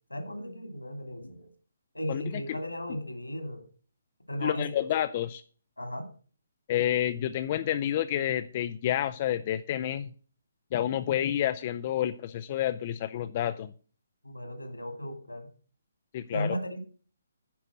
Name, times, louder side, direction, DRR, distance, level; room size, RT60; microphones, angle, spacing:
voice 1, 0.1-1.5 1.9-3.6 4.3-4.7 5.8-6.1 14.2-15.5 16.3-16.8, equal, 80° left, 8 dB, 2.5 m, -35 dB
voice 2, 4.4-5.4 6.7-10.1 10.7-13.7 16.1-16.5, left 11 dB, 30° left, 10 dB, 0.4 m, -29 dB
10.0 x 5.3 x 7.4 m, 0.41 s
figure-of-eight pair, 135°, 0 cm